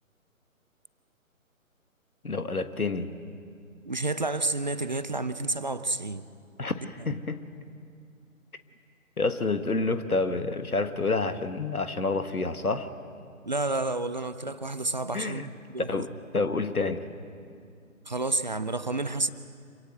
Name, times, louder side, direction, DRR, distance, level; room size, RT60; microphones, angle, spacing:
voice 1, 2.2-3.1 6.6-7.5 9.2-12.9 15.1-15.5 15.9-16.1 16.3-17.1, left 3 dB, 85° left, 10 dB, 1.5 m, -28 dB
voice 2, 3.8-6.3 7.0-7.1 13.5-16.0 18.1-19.3, right 2 dB, 35° right, 12 dB, 0.5 m, -30 dB
26.5 x 17.5 x 7.7 m, 2.4 s
figure-of-eight pair, 145°, 42 cm